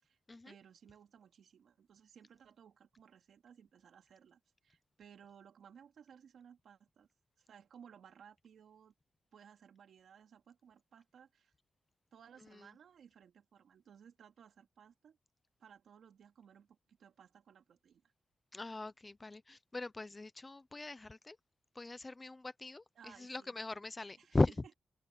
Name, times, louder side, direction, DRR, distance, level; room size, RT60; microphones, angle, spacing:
voice 1, 0.4-7.1 7.4-8.9 9.3-11.5 12.1-15.2 15.6-18.1 22.9-23.5 24.2-24.4, right 8 dB, 75° right, 3.0 m, -60 dB
voice 2, 18.5-21.4 21.7-24.5, left 2 dB, 20° left, 0.6 m, -38 dB
wide cardioid pair, 165°, 0 cm